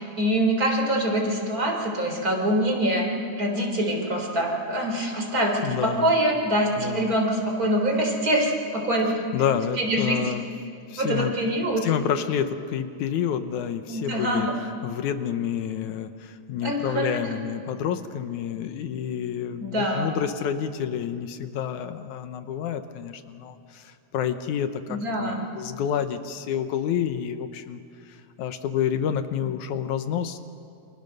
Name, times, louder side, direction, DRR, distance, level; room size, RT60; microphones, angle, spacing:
voice 1, 0.0-3.1 3.4-9.2 9.8-10.3 11.0-11.8 13.9-14.5 16.6-17.3 19.6-20.1 24.9-25.4, right 1 dB, 30° right, 0 dB, 4.3 m, -24 dB
voice 2, 5.6-6.1 6.8-7.2 9.3-10.5 10.9-11.3 11.8-14.5 14.8-27.8 28.1-30.4, left 9 dB, 80° left, 9 dB, 2.3 m, -29 dB
29.0 x 26.5 x 6.7 m, 2.5 s
omnidirectional pair, 3.5 m